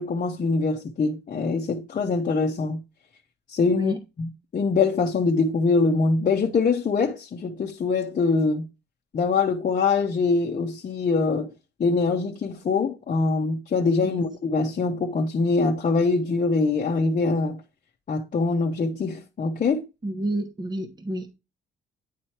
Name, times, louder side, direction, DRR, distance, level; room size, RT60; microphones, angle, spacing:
voice 1, 0.0-2.8 3.5-8.7 9.1-11.5 11.8-17.6 18.1-19.8, left 4 dB, 40° left, 0.9 m, -23 dB
voice 2, 20.0-21.4, right 1 dB, 20° right, 1.0 m, -30 dB
9.3 x 3.2 x 4.4 m
cardioid pair, 90°, 20 cm